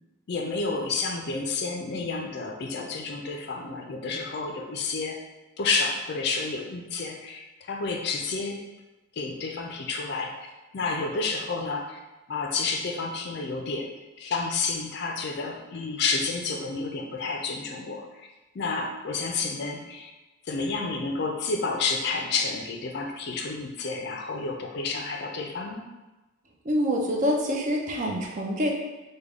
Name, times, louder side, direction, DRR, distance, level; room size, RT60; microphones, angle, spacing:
voice 1, 0.3-5.2 5.6-8.6 9.1-10.3 10.7-12.0 12.3-13.9 14.2-18.3 18.5-20.1 20.5-25.8, left 4 dB, 50° left, 3 dB, 0.4 m, -30 dB
voice 2, 26.7-28.7, equal, 35° right, 0 dB, 0.4 m, -26 dB
3.4 x 2.2 x 3.5 m, 1.1 s
head